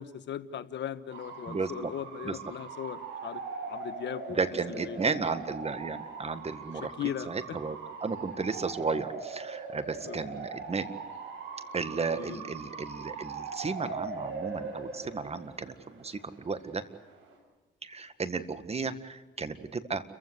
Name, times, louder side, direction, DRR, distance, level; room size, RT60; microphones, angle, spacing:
voice 1, 0.0-3.4 3.7-5.2 6.7-7.6 9.9-10.2 12.1-12.5, left 9 dB, 65° left, 11 dB, 1.4 m, -38 dB
Bark / Motor vehicle (road) / Siren, 1.1-17.4, right 4 dB, 75° right, 7.0 m, -41 dB
voice 2, 1.5-1.9 2.2-2.4 4.4-10.9 11.7-16.8 17.8-20.0, right 4 dB, 30° right, 12 dB, 1.8 m, -34 dB
29.5 x 15.5 x 8.2 m, 1.1 s
cardioid pair, 90°, 20 cm